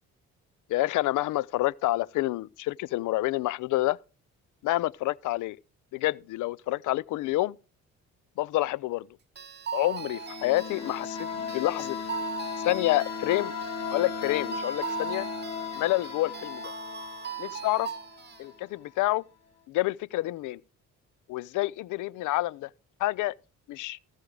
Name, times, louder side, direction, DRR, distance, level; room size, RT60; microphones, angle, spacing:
voice 1, 0.7-4.0 4.6-5.6 5.9-7.6 8.4-9.1 9.7-12.0 12.6-13.5 13.9-15.3 15.8-16.7 17.4-17.9 18.4-19.2 19.7-20.6 21.3-22.7 23.0-23.3 23.7-24.0, left 17 dB, 80° left, 0.5 m, -28 dB
Electronic Christmas decoration, 9.4-18.4, right 7 dB, 35° right, 0.9 m, -39 dB
sound 1, 10.0-18.6, left 6 dB, 60° left, 1.8 m, -36 dB
15.0 x 6.4 x 4.8 m
cardioid pair, 90°, 30 cm